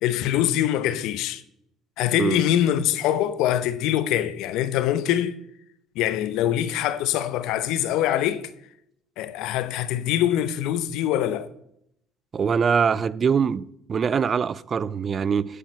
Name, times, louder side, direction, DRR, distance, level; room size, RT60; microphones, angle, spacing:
voice 1, 0.0-1.4 2.0-5.4 5.9-8.5 9.2-11.5, left 11 dB, 75° left, 0.7 m, -24 dB
voice 2, 12.3-13.6 13.9-15.6, right 6 dB, 40° right, 0.4 m, -23 dB
10.0 x 6.6 x 4.6 m
supercardioid pair, 80°, 0 cm